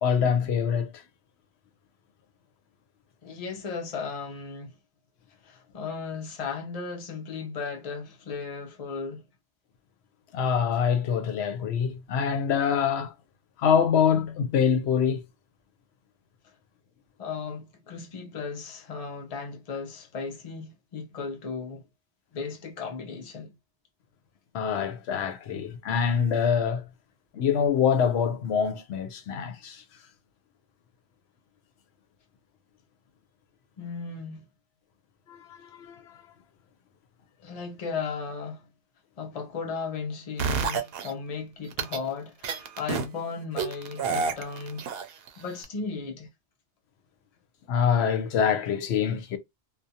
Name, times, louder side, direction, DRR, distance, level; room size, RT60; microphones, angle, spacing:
voice 1, 0.0-1.0 10.3-13.1 13.6-15.2 24.5-26.9 27.3-29.8 35.3-36.2 47.7-49.4, left 7 dB, 80° left, 0.9 m, -25 dB
voice 2, 3.2-4.8 5.4-9.3 17.2-21.8 22.3-23.5 33.8-34.4 37.4-38.7 39.2-44.9 45.4-46.3, left 5 dB, 40° left, 0.7 m, -36 dB
sound 1, 40.4-41.1 41.7-42.0 42.4-43.1 43.6-45.3 45.6-45.7, right 5 dB, 70° right, 0.8 m, -28 dB
2.5 x 2.2 x 2.7 m
omnidirectional pair, 1.1 m